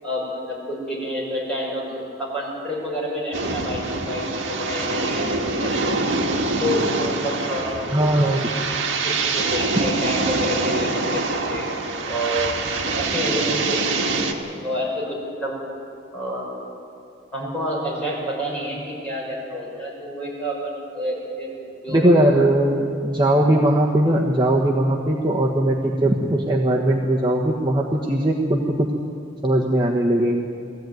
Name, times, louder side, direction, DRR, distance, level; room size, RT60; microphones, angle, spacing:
voice 1, 0.0-6.1 6.6-8.5 9.0-11.7 12.1-14.3 14.6-15.6 16.1-16.5 17.3-21.6 21.8-22.1, equal, 5° left, -5 dB, 6.2 m, -29 dB
sound 1, 3.3-14.3, right 3 dB, 70° right, 1.9 m, -25 dB
voice 2, 7.9-8.5 21.9-28.9 29.4-30.5, right 1 dB, 20° right, -2 dB, 1.2 m, -19 dB
19.5 x 15.0 x 9.3 m, 2.5 s
head